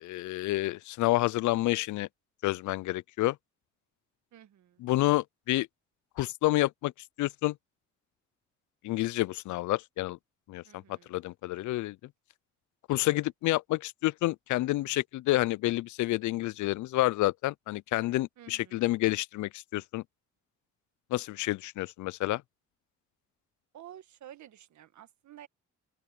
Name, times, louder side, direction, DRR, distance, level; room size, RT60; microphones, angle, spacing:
voice 1, 0.0-2.1 2.4-3.4 4.8-5.7 6.2-6.9 7.2-7.5 8.8-10.2 10.5-10.8 11.1-12.0 12.9-20.0 21.1-22.4, left 17 dB, 75° left, 0.5 m, -29 dB
voice 2, 4.3-4.9 10.6-11.2 18.4-18.9 23.7-25.5, right 11 dB, 70° right, 1.7 m, -51 dB
open air
cardioid pair, 90°, 30 cm